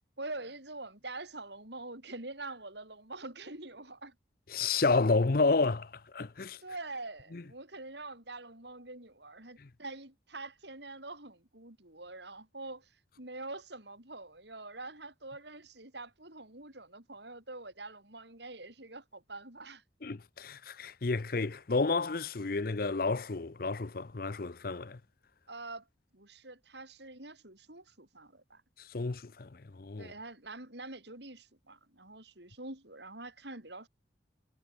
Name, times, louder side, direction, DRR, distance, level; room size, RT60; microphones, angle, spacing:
voice 1, 0.2-4.2 6.6-12.9 13.2-19.8 25.5-25.9 26.1-28.6 30.0-33.9, right 2 dB, 65° right, 7.3 m, -45 dB
voice 2, 4.5-6.6 7.3-7.4 9.6-9.7 20.0-25.0 28.8-30.1, left 3 dB, 50° left, 0.6 m, -31 dB
head